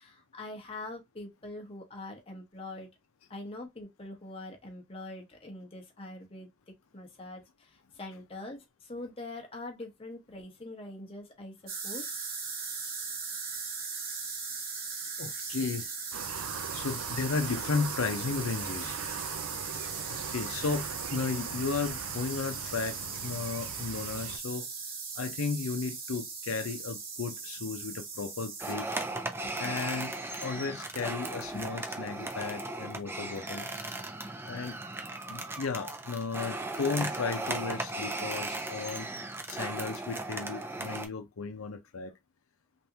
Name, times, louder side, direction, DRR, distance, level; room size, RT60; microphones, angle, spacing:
voice 1, 0.0-2.9 3.3-12.1 29.4-29.6 31.5-31.6 35.2-35.6, left 2 dB, 25° left, 0.8 m, -44 dB
sound 1, 11.7-28.7, right 5 dB, 45° right, 0.9 m, -39 dB
voice 2, 15.2-15.9 16.7-19.0 20.1-24.7 25.2-28.9 29.6-33.7 34.4-34.8 35.3-39.1 39.5-42.1, left 4 dB, 90° left, 0.6 m, -34 dB
sound 2, 16.1-24.4, right 7 dB, 85° right, 0.4 m, -40 dB
sound 3, 28.6-41.1, right 2 dB, 10° right, 0.4 m, -37 dB
3.4 x 2.6 x 2.8 m
head